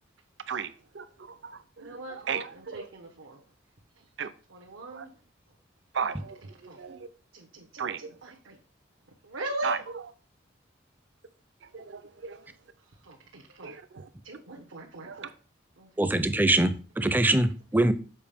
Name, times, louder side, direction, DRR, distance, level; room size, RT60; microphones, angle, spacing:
voice 1, 0.5-2.9 4.2-4.3 4.9-5.1 5.9-6.4 6.8-7.1 7.8-8.1 9.6-10.0 11.7-12.4 13.6-14.1 15.0-15.3, right 6 dB, 60° right, 0.5 m, -35 dB
voice 2, 1.8-2.2 2.5-3.4 4.5-5.1 6.6-6.8 7.3-8.6 9.2-9.8 13.0-13.8 14.2-15.3 15.8-15.9, right 1 dB, 90° right, 1.1 m, -40 dB
voice 3, 16.0-17.9, right 1 dB, 10° right, 0.4 m, -23 dB
7.1 x 4.9 x 3.5 m
head